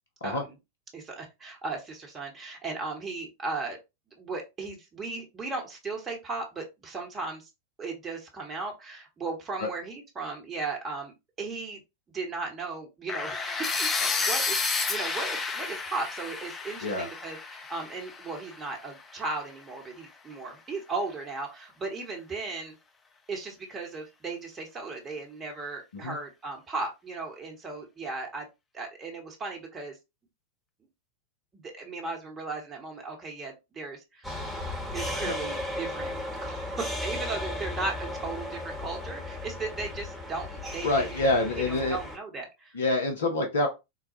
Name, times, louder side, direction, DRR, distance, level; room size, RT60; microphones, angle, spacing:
voice 1, 0.2-0.5 0.9-3.8 4.2-7.5 7.8-11.8 12.1-22.8 23.3-28.5 28.7-29.9 31.5-34.3 34.9-36.1 36.4-41.2 41.5-42.8, right 3 dB, 20° right, 1 dB, 1.1 m, -36 dB
sound 1, 13.1-19.0, left 4 dB, 20° left, 0.5 m, -31 dB
sound 2, 34.2-42.2, left 1 dB, ahead, 1.1 m, -35 dB
voice 2, 40.8-42.0 42.7-43.7, left 2 dB, 65° left, 3 dB, 0.7 m, -26 dB
3.9 x 2.2 x 2.8 m, 0.24 s
figure-of-eight pair, 90°, 0 cm